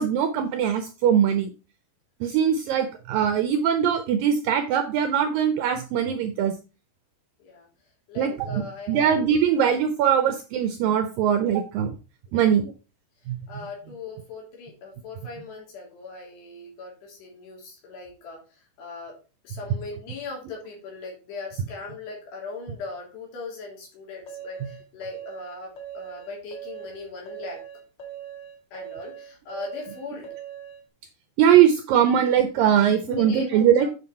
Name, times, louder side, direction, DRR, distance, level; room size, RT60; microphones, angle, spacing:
voice 1, 0.0-1.5 2.2-6.5 8.2-11.9 12.3-12.7 13.3-13.7 24.6-24.7 31.4-33.9, right 9 dB, 80° right, 8 dB, 2.0 m, -21 dB
voice 2, 8.1-9.4 12.3-12.7 13.5-19.2 19.4-27.6 28.7-30.3 33.1-33.9, left 3 dB, 80° left, -1 dB, 5.4 m, -39 dB
sound 1, 24.3-30.8, right 9 dB, 40° left, 1.8 m, -40 dB
9.6 x 5.9 x 4.3 m, 0.33 s
omnidirectional pair, 4.8 m